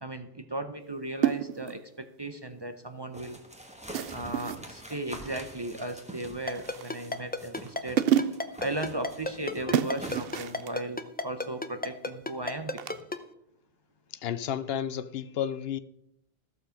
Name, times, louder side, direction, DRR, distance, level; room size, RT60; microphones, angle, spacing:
voice 1, 0.0-3.4 4.1-8.0 8.6-13.0, right 1 dB, 30° right, 0.7 m, -36 dB
sound 1, 1.2-1.8 3.9-4.7 6.5-7.1 7.7-7.8 8.0-8.6 9.7-10.7 12.8-13.0, right 10 dB, 70° right, 0.8 m, -29 dB
sound 2, 3.1-8.0 8.3-10.6, equal, 5° right, 1.3 m, -46 dB
Ringtone, 6.5-13.2, left 2 dB, 10° left, 0.5 m, -32 dB
voice 2, 14.2-15.8, left 9 dB, 75° left, 0.8 m, -32 dB
14.5 x 6.8 x 5.1 m
omnidirectional pair, 1.0 m